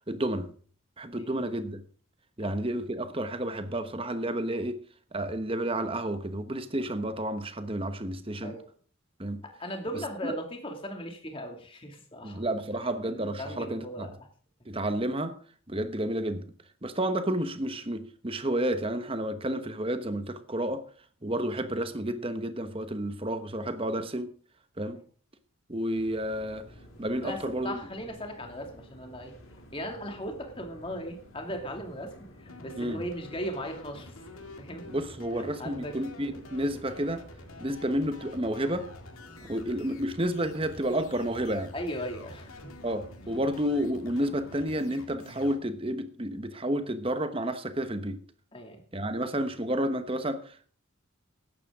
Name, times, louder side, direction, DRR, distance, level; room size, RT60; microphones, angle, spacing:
voice 1, 0.1-0.5 1.0-1.8 2.4-4.8 5.1-8.6 9.2-9.4 10.2-10.3 12.2-14.1 14.7-15.3 15.7-16.4 16.8-20.8 21.2-24.3 24.8-25.0 25.7-26.7 27.0-27.8 32.7-33.0 34.9-37.2 37.6-38.9 39.5-41.7 42.8-48.2 48.9-50.7, right 1 dB, 25° right, 1.1 m, -31 dB
voice 2, 9.4-12.4 13.0-14.3 24.9-25.0 27.2-29.3 29.7-34.1 34.6-34.8 35.3-35.9 36.2-36.4 39.4-39.5 41.7-42.7 48.5-48.8, equal, 25° left, 2.4 m, -38 dB
sound 1, 25.9-44.8, equal, 75° left, 3.1 m, -51 dB
sound 2, 32.5-45.6, left 2 dB, 90° left, 2.1 m, -49 dB
16.0 x 12.0 x 3.7 m
head